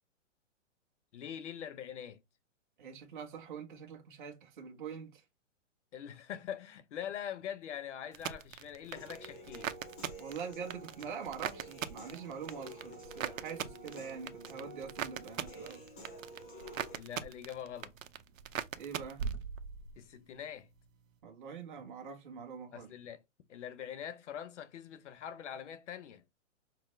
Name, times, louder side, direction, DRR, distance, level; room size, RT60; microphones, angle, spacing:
voice 1, 1.1-2.2 5.9-9.7 16.9-17.9 20.0-20.7 22.7-23.2 23.5-26.2, left 9 dB, 65° left, 0.8 m, -43 dB
voice 2, 2.8-5.2 10.2-15.8 18.8-19.2 21.2-22.9, right 6 dB, 40° right, 1.3 m, -44 dB
sound 1, 8.1-20.0 20.3-20.9, right 8 dB, 90° right, 0.7 m, -41 dB
Human voice / Piano, 8.9-16.9, equal, 15° left, 0.6 m, -50 dB
6.0 x 2.1 x 3.1 m
hypercardioid pair, 170°, 38 cm